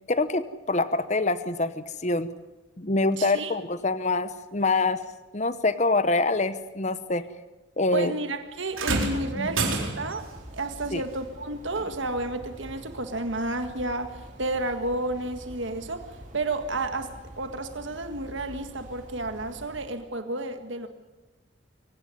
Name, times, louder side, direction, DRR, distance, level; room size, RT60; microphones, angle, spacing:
voice 1, 0.1-2.3 2.8-5.0 5.3-7.2 7.8-8.1 9.4-9.5 10.9-11.0, left 3 dB, 35° left, 13 dB, 0.9 m, -25 dB
voice 2, 3.2-3.6 7.9-10.3 10.5-20.9, right 2 dB, 70° right, 7 dB, 1.8 m, -31 dB
sound 1, 8.7-10.3 11.7-11.9 12.8-12.9, right 3 dB, 90° right, 4.5 m, -28 dB
sound 2, 10.2-19.9, equal, 40° right, 5.2 m, -46 dB
24.5 x 17.0 x 9.8 m, 1.1 s
head